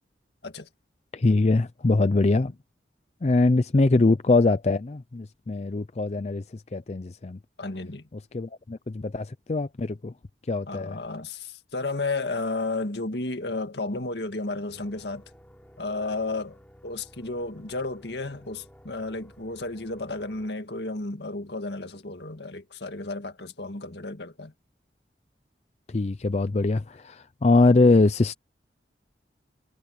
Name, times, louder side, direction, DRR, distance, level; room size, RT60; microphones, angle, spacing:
voice 1, 1.1-2.5 3.2-7.4 8.3-10.1 10.5-11.0 25.9-28.3, left 3 dB, 35° left, 0.5 m, -23 dB
voice 2, 7.6-8.0 10.7-15.2 15.8-16.6 16.8-24.5, left 2 dB, 70° left, 1.9 m, -32 dB
sound 1, 14.7-20.5, equal, 10° left, 6.5 m, -53 dB
head